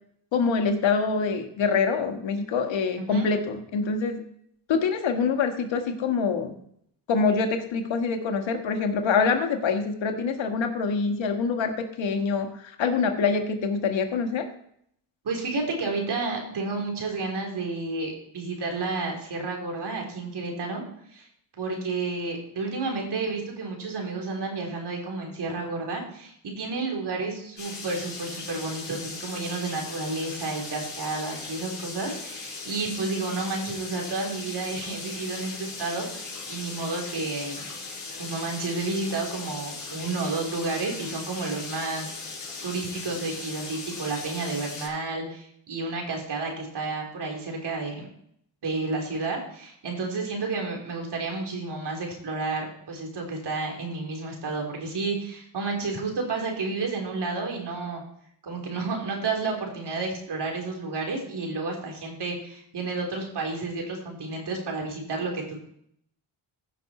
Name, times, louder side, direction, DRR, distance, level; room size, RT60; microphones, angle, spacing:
voice 1, 0.3-4.2 4.7-6.5 7.1-14.5, left 5 dB, 75° left, 6 dB, 1.6 m, -25 dB
voice 2, 3.0-3.3 15.2-20.8 21.1-21.3 21.6-37.7 38.2-42.1 42.6-48.1 48.6-58.0 58.4-65.6, right 3 dB, 60° right, 0 dB, 3.5 m, -31 dB
sound 1, 27.6-44.9, left 3 dB, 40° left, 4.8 m, -38 dB
15.5 x 6.0 x 4.3 m, 0.69 s
cardioid pair, 75°, 46 cm